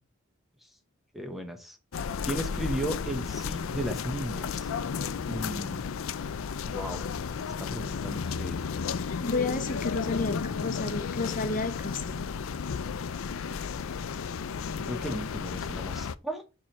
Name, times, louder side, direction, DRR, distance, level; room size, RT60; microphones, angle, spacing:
voice 1, 1.1-1.8 2.3-4.7 5.3-6.0 6.6-7.1 7.4-8.6 10.2-11.6 14.7-16.4, right 1 dB, ahead, 5 dB, 0.9 m, -36 dB
sound 1, 1.9-16.2, left 6 dB, 80° left, 0.4 m, -33 dB
voice 2, 9.2-12.0, left 3 dB, 40° left, 8 dB, 0.8 m, -31 dB
4.8 x 4.5 x 5.7 m, 0.30 s
head